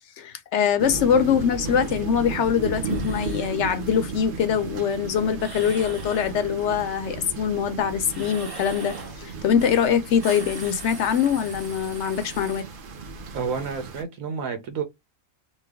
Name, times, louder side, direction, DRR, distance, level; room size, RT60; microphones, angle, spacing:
voice 1, 0.2-12.7, left 8 dB, 65° left, 0.8 m, -23 dB
sound 1, 0.8-14.0, right 5 dB, 50° right, 0.7 m, -35 dB
sound 2, 1.7-2.0 2.7-3.6 5.3-6.4 8.0-9.2 9.6-9.8 10.1-12.6, right 2 dB, 20° right, 0.8 m, -41 dB
voice 2, 13.3-14.8, right 6 dB, 85° right, 1.2 m, -30 dB
3.1 x 2.2 x 3.4 m
omnidirectional pair, 1.4 m